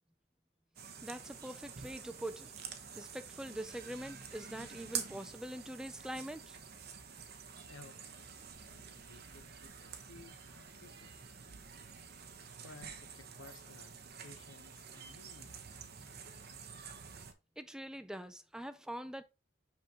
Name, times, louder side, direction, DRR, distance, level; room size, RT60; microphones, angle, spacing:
sound 1, 0.8-17.3, right 7 dB, 55° right, 1.0 m, -48 dB
voice 1, 1.0-2.5 2.9-6.5 17.6-19.2, right 1 dB, 5° right, 0.3 m, -44 dB
voice 2, 7.3-8.3 8.7-11.6 12.6-16.0, left 3 dB, 80° left, 0.8 m, -58 dB
6.1 x 5.8 x 2.9 m
head